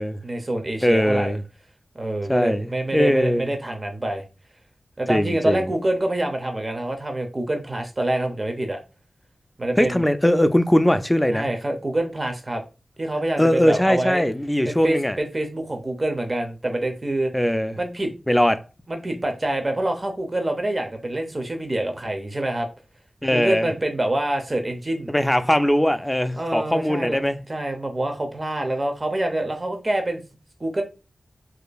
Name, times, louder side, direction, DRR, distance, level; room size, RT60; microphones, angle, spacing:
voice 1, 0.2-1.3 2.0-4.2 5.0-8.8 9.6-10.1 11.3-12.6 13.0-14.3 14.6-17.3 17.8-18.1 18.9-22.7 23.3-25.1 26.3-27.2 27.5-30.2 30.6-30.8, right 1 dB, 40° right, 0.6 m, -26 dB
voice 2, 0.8-1.4 2.3-3.5 5.1-5.7 9.8-11.5 13.4-15.2 17.3-17.8 18.3-18.6 23.2-23.7 25.1-27.4, equal, 10° left, 0.3 m, -20 dB
2.9 x 2.5 x 2.3 m
cardioid pair, 40°, 0 cm